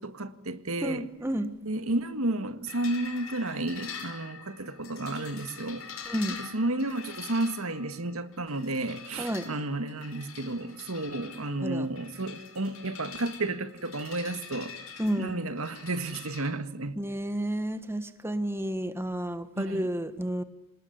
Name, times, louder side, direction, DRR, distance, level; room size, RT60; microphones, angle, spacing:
voice 1, 0.0-1.1 1.6-5.9 6.3-14.7 15.2-17.0 19.6-19.9, right 2 dB, 80° right, 1.8 m, -32 dB
voice 2, 0.8-1.5 6.0-6.4 9.2-9.5 11.6-11.9 15.0-15.3 17.0-20.4, right 1 dB, 10° right, 1.5 m, -31 dB
sound 1, 2.7-16.5, left 7 dB, 75° left, 5.9 m, -45 dB
27.0 x 19.5 x 9.8 m
head